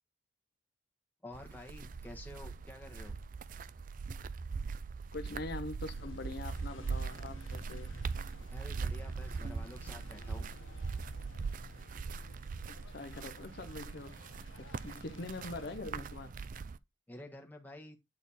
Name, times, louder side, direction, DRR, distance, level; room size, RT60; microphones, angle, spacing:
voice 1, 1.2-3.2 8.5-10.5 17.1-18.0, left 1 dB, 10° left, 1.4 m, -50 dB
sound 1, 1.3-16.8, right 4 dB, 45° right, 0.4 m, -41 dB
voice 2, 5.1-7.9 12.7-14.2 14.6-16.3, left 2 dB, 55° left, 0.7 m, -43 dB
sound 2, 5.9-15.8, left 2 dB, 85° left, 1.1 m, -56 dB
8.7 x 4.2 x 4.1 m
head